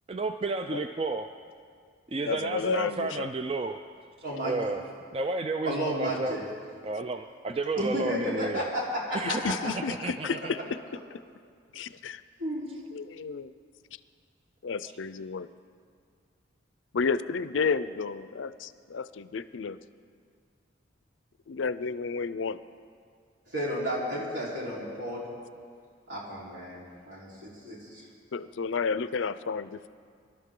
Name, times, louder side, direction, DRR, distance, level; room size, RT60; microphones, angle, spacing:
voice 1, 0.1-1.3 2.1-3.8 4.4-6.4 6.8-8.6 9.1-10.5, right 3 dB, 30° right, 6 dB, 0.4 m, -32 dB
voice 2, 2.3-3.3 9.2-10.8 11.7-12.2 12.9-13.5 14.6-15.5 16.9-19.8 21.5-22.6 28.3-29.9, left 5 dB, 80° left, 15 dB, 0.5 m, -31 dB
voice 3, 4.2-4.5 5.6-6.4 7.8-9.5 12.4-12.7 23.5-25.3 26.1-28.0, equal, 70° right, -5 dB, 4.1 m, -32 dB
24.0 x 12.0 x 3.8 m, 2.1 s
head